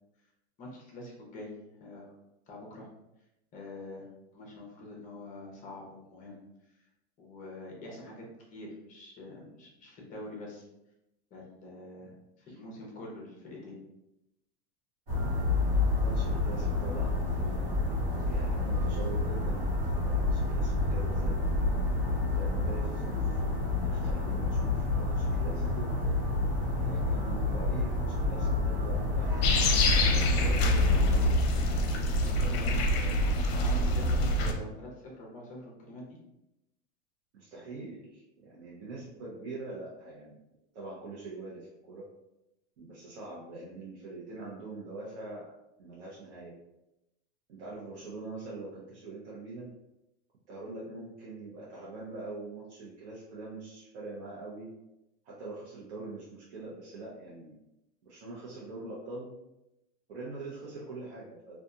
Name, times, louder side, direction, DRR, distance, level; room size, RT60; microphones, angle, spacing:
voice 1, 0.6-1.5 1.8-2.1 2.5-2.9 3.5-4.1 4.3-6.4 6.7-6.9 7.2-10.7 11.3-13.8 32.5-32.7 33.6-36.2, left 1 dB, 25° left, -2 dB, 0.7 m, -45 dB
sound 1, 15.1-31.3, left 3 dB, 60° right, 1.3 m, -29 dB
voice 2, 16.0-17.8 18.3-21.4 22.3-23.4 23.8-26.0 26.8-31.6 32.4-33.5 37.3-40.4 40.7-42.1 42.8-45.5 45.8-46.6 47.5-49.7 50.5-54.7 55.2-57.5 58.0-59.3 60.1-61.6, right 3 dB, 90° right, -6 dB, 0.8 m, -43 dB
sound 2, 29.4-34.5, left 1 dB, 65° left, 0.6 m, -26 dB
2.7 x 2.4 x 2.3 m, 0.91 s
supercardioid pair, 150°, 33 cm